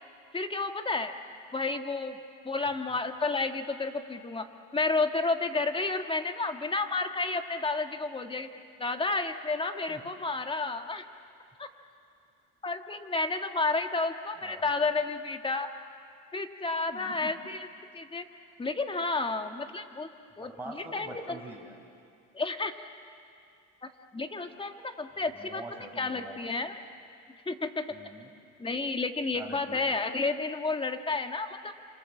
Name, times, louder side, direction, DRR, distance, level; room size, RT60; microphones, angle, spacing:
voice 1, 0.3-1.1 1.5-2.2 2.4-4.5 4.7-8.5 8.8-11.0 11.6-11.7 12.6-15.7 16.3-17.7 17.9-18.2 18.6-20.1 20.4-21.4 22.3-22.7 24.1-25.6 26.0-26.8 27.5-27.9 28.6-31.7, left 3 dB, 15° left, 6 dB, 1.6 m, -31 dB
voice 2, 16.8-17.3 20.4-21.7 25.3-26.5 27.9-28.3 29.3-29.9, right 1 dB, 5° right, 0 dB, 5.2 m, -45 dB
28.0 x 26.5 x 7.4 m, 2.4 s
cardioid pair, 115°, 34 cm